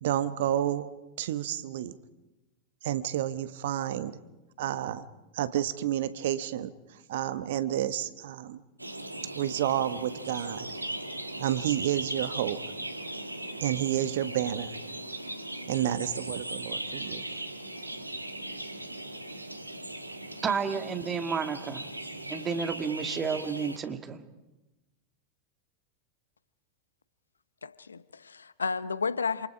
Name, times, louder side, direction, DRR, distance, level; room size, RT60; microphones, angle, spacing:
voice 1, 0.0-0.9 1.2-1.9 2.8-4.2 4.6-5.0 5.3-6.7 7.1-8.6 9.3-10.7 11.4-12.6 13.6-14.7 15.7-17.2, right 11 dB, 55° right, 1.0 m, -30 dB
sound 1, 8.8-23.8, right 1 dB, 85° right, 1.4 m, -38 dB
voice 2, 20.4-21.9 22.3-24.2, right 6 dB, 20° right, 1.9 m, -31 dB
voice 3, 27.6-29.5, left 5 dB, 75° left, 0.7 m, -32 dB
27.5 x 27.5 x 5.0 m
figure-of-eight pair, 90°, 0 cm